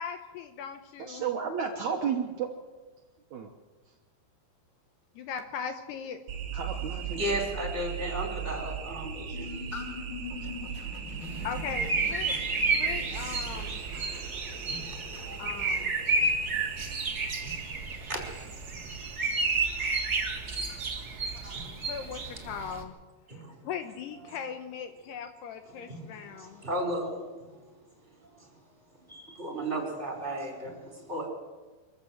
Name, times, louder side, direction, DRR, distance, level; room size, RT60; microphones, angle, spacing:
voice 1, 0.0-1.3 5.2-6.2 11.4-12.4 12.8-13.8 15.4-16.0 21.9-23.0 23.3-26.6, left 7 dB, 75° left, 7 dB, 2.7 m, -39 dB
voice 2, 1.0-2.5 3.3-3.5 6.5-7.2, right 7 dB, 85° right, 2 dB, 1.6 m, -32 dB
sound 1, 6.3-19.2, right 8 dB, 65° right, 1.7 m, -39 dB
voice 3, 6.7-9.9 10.4-10.5 13.4-13.5 13.9-15.4 15.7-17.1 17.4-20.0 20.4-21.7 23.3-23.6 24.3-24.4 25.7-27.6 28.2-28.5 29.1-31.3, right 1 dB, 15° right, 0 dB, 4.6 m, -38 dB
sound 2, 7.6-18.1, left 3 dB, 40° left, 2.0 m, -45 dB
sound 3, 11.2-22.8, right 3 dB, 40° right, 1.5 m, -31 dB
24.5 x 14.0 x 8.0 m, 1.3 s
omnidirectional pair, 5.3 m